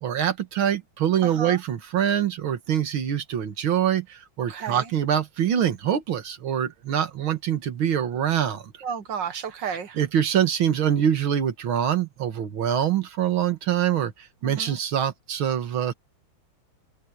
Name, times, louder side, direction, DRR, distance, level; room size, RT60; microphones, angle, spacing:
voice 1, 0.0-8.7 9.9-15.9, right 9 dB, 80° right, 2.3 m, -24 dB
voice 2, 1.2-1.6 4.5-4.9 8.8-10.0 14.4-14.8, right 7 dB, 65° right, 1.9 m, -32 dB
omnidirectional pair, 2.2 m